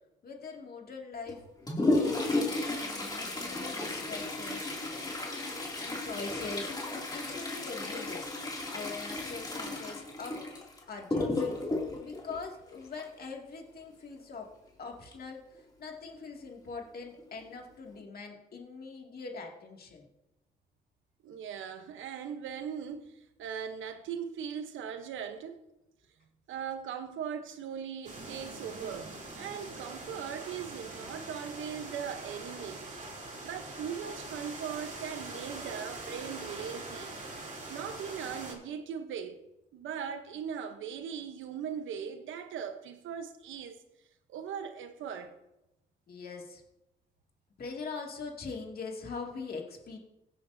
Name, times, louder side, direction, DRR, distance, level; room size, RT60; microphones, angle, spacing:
voice 1, 0.2-1.4 2.2-4.7 5.8-8.3 8.7-10.4 10.9-11.6 12.0-14.5 14.8-15.4 15.8-20.1 46.1-46.6 47.6-50.0, left 4 dB, 50° left, 2.4 m, -42 dB
Toilet flush, 1.3-13.2 15.1-15.2 15.5-15.6 16.4-16.5 17.2-17.4 17.9-18.0, left 2 dB, 20° left, 2.7 m, -33 dB
voice 2, 21.2-25.6 26.5-33.1 33.4-37.1 37.7-39.4 39.7-43.8 44.3-45.3, right 7 dB, 75° right, 1.0 m, -39 dB
sound 1, 28.0-38.5, right 2 dB, 40° right, 2.9 m, -43 dB
16.0 x 8.6 x 2.7 m
cardioid pair, 90°, 20 cm